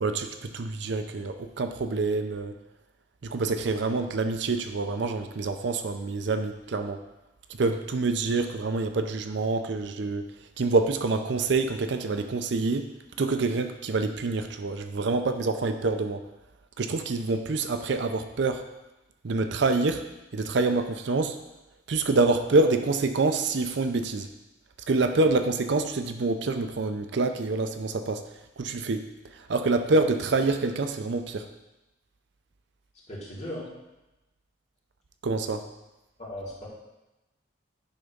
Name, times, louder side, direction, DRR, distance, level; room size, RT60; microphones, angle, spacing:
voice 1, 0.0-2.5 3.2-7.0 7.6-10.3 10.6-12.9 13.2-16.2 16.8-18.6 19.2-20.0 20.3-21.4 21.9-24.3 24.9-28.2 28.6-29.1 29.3-31.5 35.2-35.6, right 3 dB, 60° right, 7 dB, 0.5 m, -26 dB
voice 2, 33.1-33.7 36.2-36.7, left 1 dB, 35° left, -6 dB, 2.3 m, -37 dB
9.8 x 3.5 x 5.3 m, 1.0 s
head